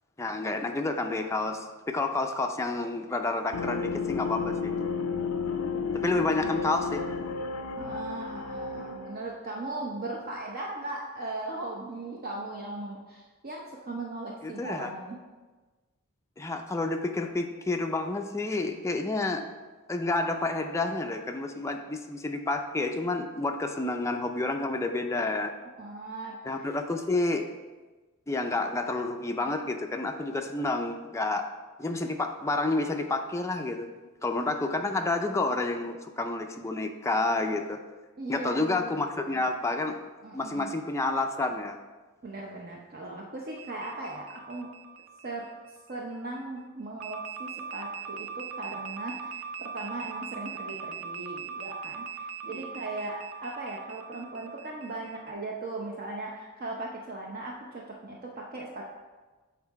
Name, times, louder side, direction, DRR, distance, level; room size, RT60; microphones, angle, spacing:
voice 1, 0.2-4.7 5.9-7.1 14.4-14.9 16.4-19.4 19.9-25.5 26.4-27.5 28.3-31.5 31.8-33.9 34.2-37.8 38.3-40.0 40.3-41.8 52.5-52.7, left 2 dB, 15° left, 4 dB, 0.4 m, -29 dB
sound 1, 3.5-9.3, left 5 dB, 90° left, 0.5 m, -32 dB
voice 2, 7.8-15.2 25.8-26.7 38.2-39.0 39.3-39.5 40.2-40.7 42.2-44.7 45.2-45.5 45.9-59.0, right 2 dB, 45° right, -2 dB, 0.7 m, -38 dB
sound 2, 43.6-46.1 47.0-55.3, right 6 dB, 75° right, 0.5 m, -41 dB
7.6 x 3.9 x 4.6 m, 1.3 s
head